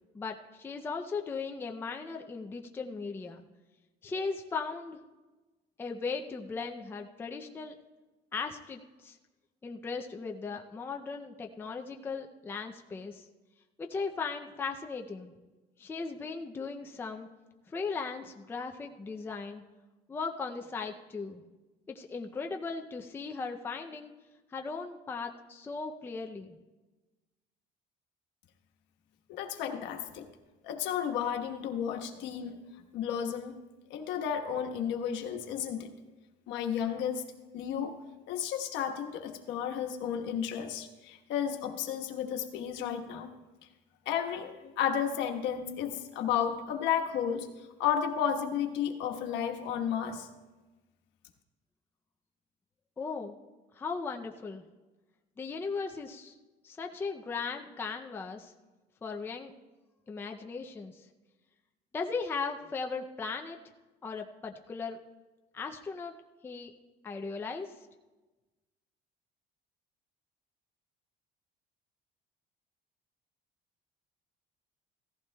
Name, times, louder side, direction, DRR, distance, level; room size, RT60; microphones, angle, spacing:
voice 1, 0.1-3.4 4.0-5.0 5.8-7.8 8.3-9.2 9.6-13.2 13.8-15.3 15.8-17.3 17.7-19.6 20.1-21.4 21.9-24.1 24.5-26.6 53.0-53.4 53.8-54.6 55.4-56.4 56.6-58.5 59.0-59.5 60.1-61.1 61.9-63.6 64.0-65.0 65.5-66.1 66.4-66.7 67.0-67.7, left 4 dB, 10° left, 3 dB, 0.4 m, -37 dB
voice 2, 29.3-30.3 30.6-32.6 32.9-33.6 33.9-35.9 36.5-37.2 37.5-37.9 38.3-43.3 44.1-47.5 47.8-50.3, left 8 dB, 70° left, 4 dB, 1.2 m, -32 dB
16.5 x 14.5 x 2.2 m, 1.2 s
cardioid pair, 170°, 19 cm